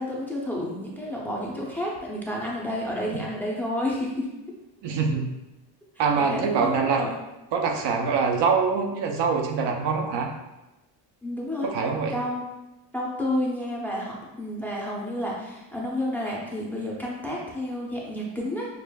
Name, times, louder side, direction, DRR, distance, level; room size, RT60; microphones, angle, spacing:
voice 1, 0.0-4.3 6.0-7.2 11.2-11.7 12.1-12.5 12.9-18.7, left 1 dB, 5° left, -4 dB, 0.6 m, -30 dB
voice 2, 4.8-5.3 6.0-7.0 7.5-10.3 11.6-12.2, right 5 dB, 65° right, 3 dB, 0.7 m, -24 dB
6.6 x 2.5 x 2.3 m, 0.99 s
cardioid pair, 135°, 45 cm